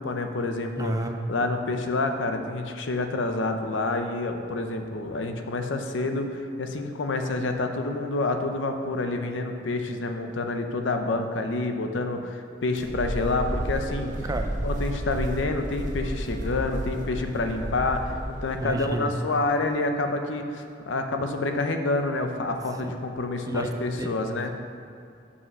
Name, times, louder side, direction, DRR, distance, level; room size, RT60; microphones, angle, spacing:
voice 1, 0.0-0.9 1.3-14.1 14.6-18.2 18.4-24.5, left 2 dB, 80° left, 6 dB, 0.6 m, -28 dB
voice 2, 0.8-1.2 14.2-14.5 18.5-19.1 23.5-23.7 24.0-24.2, right 1 dB, 20° right, 6 dB, 0.4 m, -30 dB
sound 1, 12.7-19.1, right 1 dB, 45° right, 0.7 m, -32 dB
5.6 x 5.6 x 6.0 m, 2.5 s
head